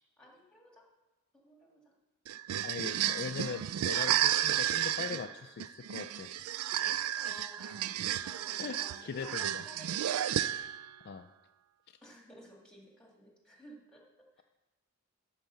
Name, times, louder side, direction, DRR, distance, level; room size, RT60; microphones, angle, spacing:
voice 1, 0.2-0.9 1.3-1.9 7.1-7.9 8.2-10.1 12.0-14.4, equal, 5° left, -1 dB, 2.0 m, -55 dB
sound 1, 2.3-10.9, right 11 dB, 80° right, 0.3 m, -32 dB
voice 2, 2.6-6.4 8.6-9.6 11.0-11.3 11.9-12.0, left 6 dB, 50° left, 8 dB, 0.4 m, -41 dB
11.5 x 4.7 x 6.8 m, 1.1 s
head